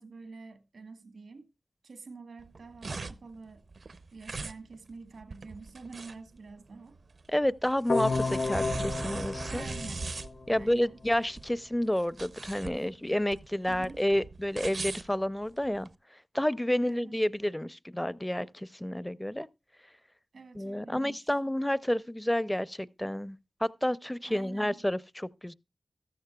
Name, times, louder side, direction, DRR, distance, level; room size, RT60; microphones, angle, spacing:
voice 1, 0.0-1.5 1.8-3.6 4.1-7.0 9.5-10.0 10.5-11.0 12.8-12.9 13.7-14.1 16.8-17.2 20.3-21.4 24.2-24.9, right 4 dB, 85° right, 1.2 m, -47 dB
sound 1, 2.4-15.9, right 3 dB, 70° right, 0.6 m, -40 dB
voice 2, 7.3-9.6 10.5-15.9 16.3-19.5 20.5-25.0 25.4-25.5, left 1 dB, 10° left, 0.5 m, -30 dB
sound 2, 7.9-10.9, left 3 dB, 85° left, 0.7 m, -32 dB
13.5 x 13.5 x 2.3 m
cardioid pair, 55°, 0 cm